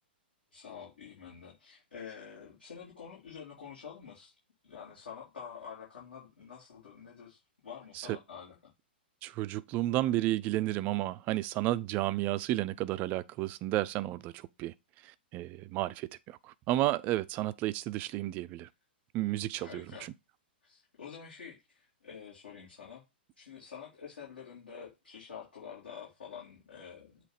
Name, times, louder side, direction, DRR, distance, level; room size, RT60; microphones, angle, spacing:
voice 1, 0.5-4.3 4.6-8.6 19.6-20.1 20.6-23.0 23.4-27.2, left 7 dB, 65° left, 3.1 m, -48 dB
voice 2, 9.2-14.7 15.3-18.7 19.1-19.8, right 15 dB, 30° right, 0.4 m, -32 dB
7.7 x 3.2 x 4.8 m
figure-of-eight pair, 110°, 6 cm